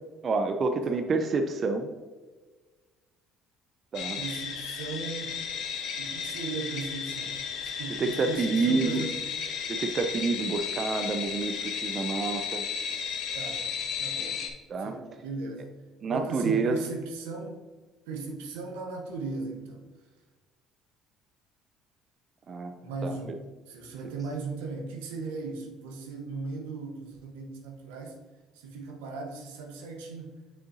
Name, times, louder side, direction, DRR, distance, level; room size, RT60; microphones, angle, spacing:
voice 1, 0.2-1.9 3.9-4.2 8.0-9.1 9.7-12.6 14.7-15.0 16.0-16.8 22.5-22.7 23.0-23.1, right 4 dB, 45° right, 6 dB, 0.5 m, -28 dB
sound 1, 3.9-14.5, left 6 dB, 70° left, 0.9 m, -34 dB
voice 2, 4.2-5.4 6.0-7.4 7.8-9.2 13.3-13.6 14.0-14.5 14.8-15.7 16.1-17.6 18.1-19.8 22.8-28.2 28.5-30.3, right 4 dB, 90° right, 2 dB, 1.0 m, -37 dB
7.3 x 5.7 x 2.7 m, 1.4 s
supercardioid pair, 70°, 0 cm